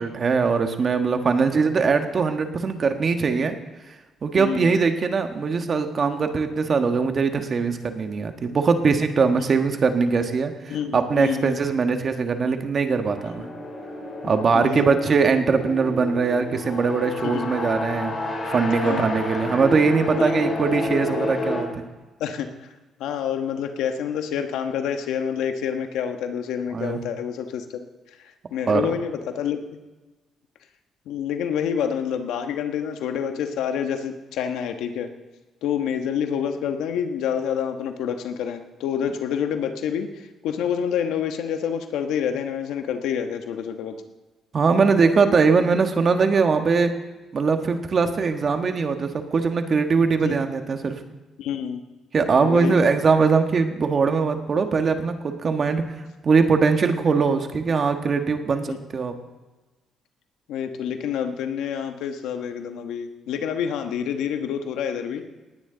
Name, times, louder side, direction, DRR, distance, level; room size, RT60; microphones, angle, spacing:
voice 1, 0.0-3.5 4.2-13.5 14.2-18.1 18.4-21.8 26.7-27.0 28.7-28.8 44.5-46.9 47.3-51.0 52.1-55.8 56.2-59.1, right 5 dB, 45° right, 6 dB, 1.4 m, -21 dB
voice 2, 4.4-4.7 10.7-11.6 13.4-13.5 14.5-15.0 17.2-17.4 18.8-19.1 20.2-20.3 22.2-22.7 23.0-27.9 28.2-29.6 31.1-35.1 35.6-43.9 50.2-50.4 51.4-51.8 52.4-52.8 58.7-58.8 60.5-65.2, left 8 dB, 90° left, 6 dB, 1.2 m, -28 dB
sound 1, 13.0-21.6, left 2 dB, 40° left, 3.6 m, -30 dB
19.0 x 9.6 x 3.9 m, 1.2 s
cardioid pair, 90°, 0 cm